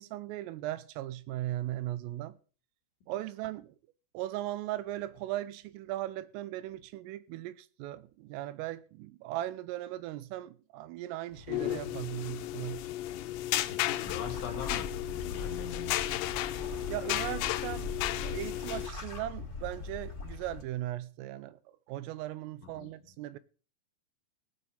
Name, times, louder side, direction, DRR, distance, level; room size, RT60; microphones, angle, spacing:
voice 1, 0.0-2.4 3.1-3.8 4.1-12.8 16.9-17.9 18.2-21.6 21.9-23.4, right 14 dB, 85° right, 3.4 m, -38 dB
sound 1, 11.4-18.9, left 14 dB, 85° left, 3.4 m, -34 dB
voice 2, 13.7-16.3 22.6-22.9, left 7 dB, 70° left, 4.2 m, -42 dB
sound 2, 14.0-20.6, left 4 dB, 25° left, 3.9 m, -41 dB
17.0 x 6.6 x 6.8 m
omnidirectional pair, 5.9 m